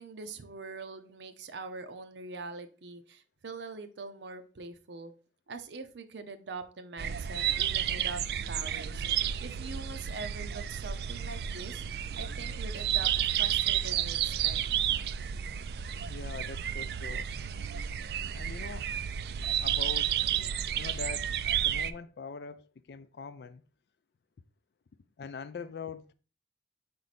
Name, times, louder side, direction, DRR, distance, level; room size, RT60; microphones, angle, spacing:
voice 1, 0.0-5.1 5.5-9.0 9.4-11.8 12.1-14.6, right 3 dB, 85° right, 0.7 m, -43 dB
sound 1, 7.0-21.9, right 10 dB, 65° right, 0.3 m, -31 dB
voice 2, 16.1-17.3 18.3-19.1 19.6-20.2 20.8-21.3 21.6-23.6 25.2-26.1, left 5 dB, 70° left, 0.4 m, -43 dB
5.1 x 4.7 x 4.1 m
head